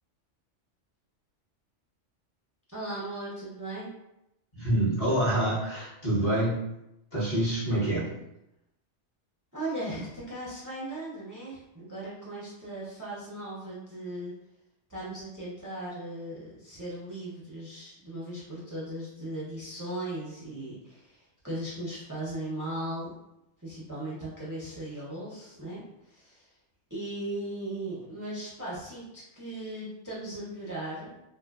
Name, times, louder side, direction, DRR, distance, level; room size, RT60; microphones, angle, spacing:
voice 1, 2.7-3.9 9.5-14.3 14.9-23.1 23.6-26.5 26.9-31.2, right 1 dB, 25° right, -7 dB, 0.4 m, -37 dB
voice 2, 4.5-6.6 7.1-8.1, right 1 dB, 35° left, -8 dB, 0.7 m, -26 dB
2.6 x 2.4 x 2.3 m, 0.86 s
omnidirectional pair, 1.2 m